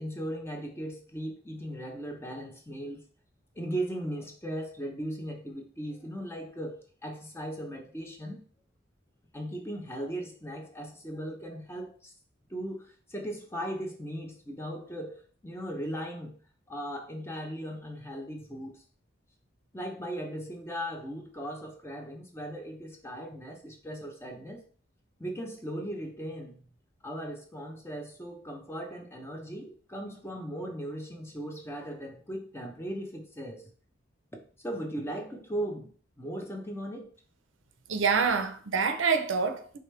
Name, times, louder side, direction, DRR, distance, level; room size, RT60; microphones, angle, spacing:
voice 1, 0.0-3.1 3.5-8.4 9.3-12.1 12.5-16.3 16.7-18.8 19.7-24.6 25.2-26.6 27.0-33.6 34.6-37.1, right 1 dB, 15° left, 0.7 m, -38 dB
voice 2, 37.9-39.8, right 5 dB, 80° right, 0.6 m, -26 dB
4.9 x 3.3 x 3.2 m
head